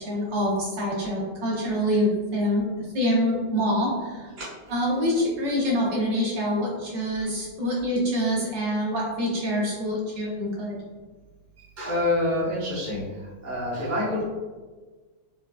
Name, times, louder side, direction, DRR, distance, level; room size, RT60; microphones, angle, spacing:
voice 1, 0.0-2.7 2.9-4.3 4.7-10.8, equal, 65° right, -5 dB, 1.5 m, -25 dB
voice 2, 11.8-13.0 13.4-14.2, left 1 dB, 15° right, -9 dB, 0.5 m, -26 dB
4.6 x 2.3 x 2.3 m, 1.4 s
omnidirectional pair, 2.2 m